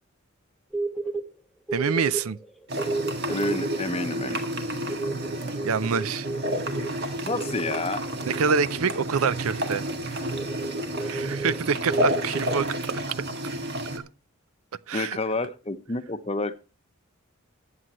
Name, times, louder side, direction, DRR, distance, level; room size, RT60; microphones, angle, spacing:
sound 1, 0.7-1.2 1.7-9.1 9.5-9.6 9.9-10.0 10.3-12.4, right 3 dB, ahead, 0.9 m, -32 dB
voice 1, 1.7-2.4 5.6-6.3 8.2-9.8 11.0-12.7 14.9-15.2, right 6 dB, 70° right, 0.5 m, -26 dB
sound 2, 2.7-14.0, equal, 50° right, 1.9 m, -30 dB
voice 2, 3.3-4.5 7.2-8.0 14.9-16.5, left 2 dB, 25° left, 0.8 m, -29 dB
20.5 x 7.8 x 3.0 m
head